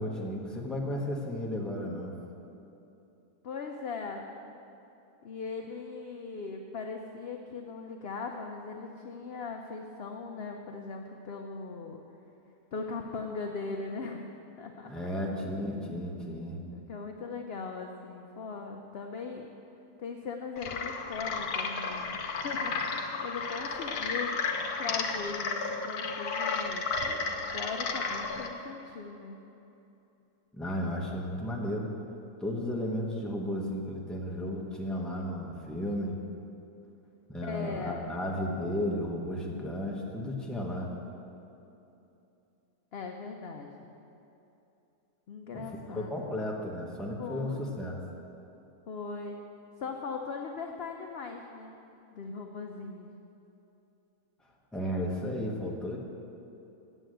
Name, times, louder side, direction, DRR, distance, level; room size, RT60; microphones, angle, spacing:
voice 1, 0.0-2.2 14.9-16.6 30.5-31.9 32.4-36.2 37.3-40.9 45.5-45.6 45.9-48.0 54.7-56.0, left 1 dB, ahead, -2 dB, 1.1 m, -34 dB
voice 2, 3.4-4.3 5.2-12.0 12.7-14.3 14.6-14.9 16.7-19.5 20.0-24.4 24.8-27.2 27.5-29.4 37.4-38.1 42.9-43.9 45.3-46.3 47.2-47.8 48.9-49.4 49.8-51.8 52.1-53.1, left 4 dB, 55° left, 3 dB, 0.7 m, -39 dB
sound 1, 20.6-28.5, left 4 dB, 85° left, 1.3 m, -33 dB
9.2 x 8.1 x 7.8 m, 2.9 s
omnidirectional pair, 1.6 m